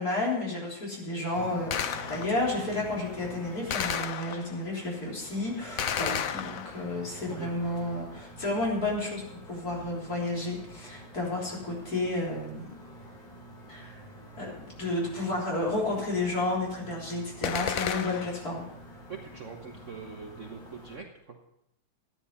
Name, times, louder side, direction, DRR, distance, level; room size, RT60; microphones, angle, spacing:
voice 1, 0.0-12.7 13.7-14.0 14.4-18.7, left 2 dB, 45° left, -3 dB, 4.2 m, -31 dB
sound 1, 1.3-21.0, right 1 dB, 20° left, 4.8 m, -47 dB
Gunshot gunfire, 1.7-2.5 3.7-4.7 5.8-7.0 17.4-18.5, left 8 dB, 65° left, 0.8 m, -32 dB
voice 2, 19.1-21.5, right 5 dB, 45° right, 2 dB, 1.2 m, -43 dB
13.5 x 9.9 x 5.6 m, 0.82 s
omnidirectional pair, 2.2 m